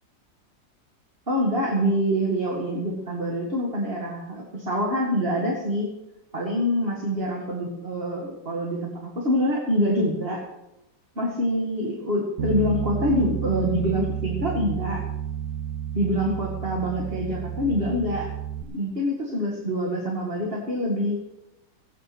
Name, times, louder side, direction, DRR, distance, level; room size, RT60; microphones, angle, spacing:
voice 1, 1.3-5.9 6.3-10.5 11.2-15.0 15.9-18.3 18.7-21.2, equal, 30° right, -1 dB, 2.2 m, -25 dB
Bass guitar, 12.4-18.6, right 10 dB, 70° right, 1.7 m, -31 dB
16.5 x 9.5 x 6.2 m, 0.91 s
omnidirectional pair, 2.0 m